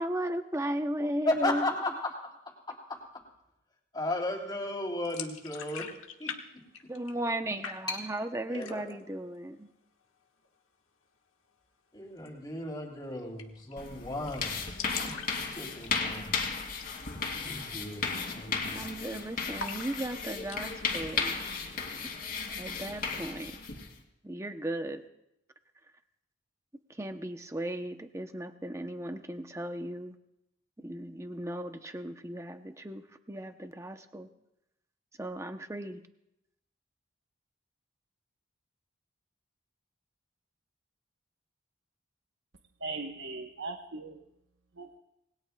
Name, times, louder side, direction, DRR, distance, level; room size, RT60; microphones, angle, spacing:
voice 1, 0.0-1.6 6.9-9.7 18.7-21.4 22.6-23.6 24.2-25.0 27.0-30.1 30.8-34.3 35.2-36.0, right 1 dB, 15° right, 7 dB, 0.7 m, -36 dB
voice 2, 1.2-3.3 3.9-5.9 6.2-6.9 7.9-8.1 8.5-9.0 11.9-16.6 17.4-18.9, left 2 dB, 20° left, -1 dB, 3.3 m, -36 dB
sound 1, 5.1-6.4 6.7-7.4 7.6-8.2 8.5-9.1 9.4-9.5 9.8-10.5 12.2-12.3 12.6-12.7 12.9-13.0 13.4-13.7 14.0-14.1 14.3-16.3 16.7-17.0 17.3-17.4 18.0-18.2 18.5-19.1 19.6-20.6, left 6 dB, 90° left, 1.5 m, -42 dB
sound 2, 13.8-24.0, left 5 dB, 45° left, 2.7 m, -35 dB
voice 3, 42.8-44.2 44.8-45.0, right 3 dB, 70° right, 3 dB, 1.0 m, -39 dB
26.5 x 20.5 x 2.3 m, 0.83 s
head